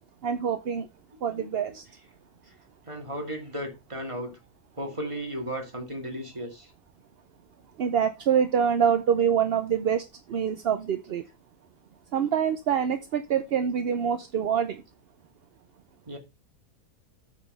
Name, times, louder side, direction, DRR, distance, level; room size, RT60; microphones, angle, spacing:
voice 1, 0.2-0.9 1.2-1.8 7.8-11.2 12.1-14.8, right 8 dB, 55° right, 0.7 m, -25 dB
voice 2, 1.3-1.9 2.5-2.6 2.8-4.4 4.8-6.7 16.1-16.2, equal, 20° right, 2.2 m, -35 dB
8.6 x 5.0 x 5.4 m
omnidirectional pair, 1.6 m